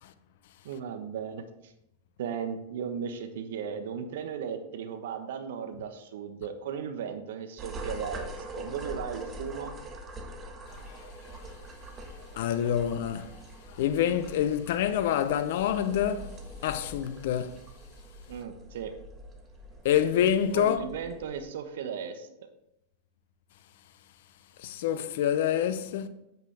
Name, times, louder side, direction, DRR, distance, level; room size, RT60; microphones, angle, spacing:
voice 1, 0.6-1.7 2.2-9.8 18.3-18.9 20.5-22.3, right 7 dB, 70° right, 1.1 m, -36 dB
sound 1, 7.6-21.4, right 1 dB, 25° right, 1.4 m, -44 dB
voice 2, 10.7-11.1 12.3-13.4 13.8-16.3 16.6-17.6 19.8-20.9 24.6-26.1, left 10 dB, 65° left, 0.7 m, -27 dB
8.6 x 8.2 x 3.3 m
hypercardioid pair, 105°, 0 cm